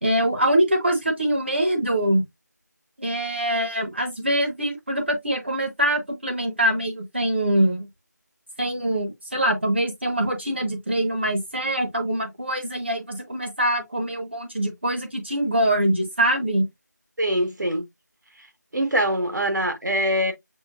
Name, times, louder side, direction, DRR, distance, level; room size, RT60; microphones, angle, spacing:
voice 1, 0.0-2.2 3.0-7.9 8.6-16.7, right 1 dB, 40° right, 0.9 m, -24 dB
voice 2, 17.2-17.8 18.7-20.3, equal, 75° right, 1.2 m, -23 dB
6.2 x 2.2 x 2.3 m
figure-of-eight pair, 175°, 10 cm